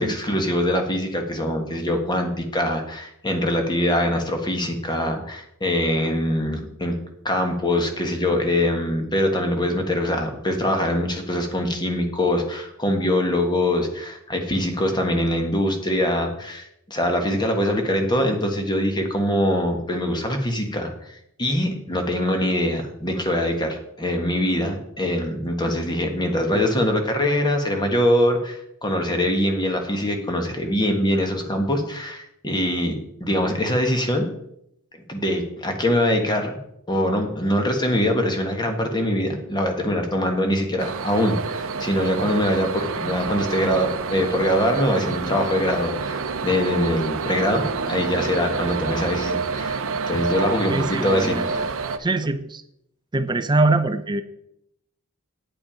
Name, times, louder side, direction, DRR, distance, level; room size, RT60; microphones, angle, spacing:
voice 1, 0.0-6.9 7.2-34.3 35.1-36.6 36.9-49.8 50.1-51.4, left 1 dB, 20° left, 4 dB, 1.4 m, -23 dB
sound 1, 40.8-52.0, right 5 dB, 60° right, 0.8 m, -28 dB
voice 2, 50.7-51.7 52.0-52.6 53.1-54.2, right 2 dB, 20° right, 11 dB, 0.5 m, -23 dB
9.0 x 8.5 x 5.0 m, 0.77 s
head